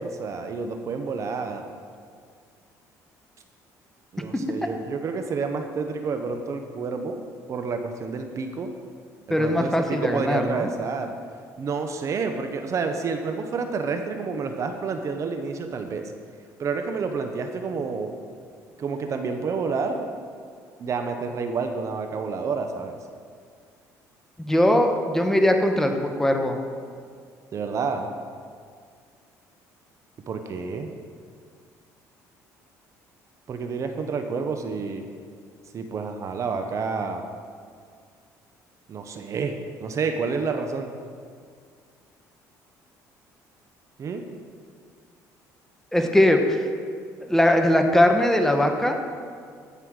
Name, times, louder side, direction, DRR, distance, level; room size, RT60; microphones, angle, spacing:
voice 1, 0.0-1.6 4.1-7.2 7.5-8.7 9.3-11.1 11.6-16.1 16.6-18.1 18.8-20.1 20.8-23.0 27.5-28.1 30.3-30.9 33.5-35.0 35.7-37.2 38.9-39.5 39.8-40.9 44.0-44.3, right 4 dB, 50° right, 6 dB, 1.0 m, -29 dB
voice 2, 9.3-10.7 24.4-26.6 45.9-46.6 47.3-49.0, left 1 dB, 5° left, 4 dB, 1.2 m, -20 dB
15.0 x 5.6 x 6.4 m, 2.1 s
cardioid pair, 100°, 7 cm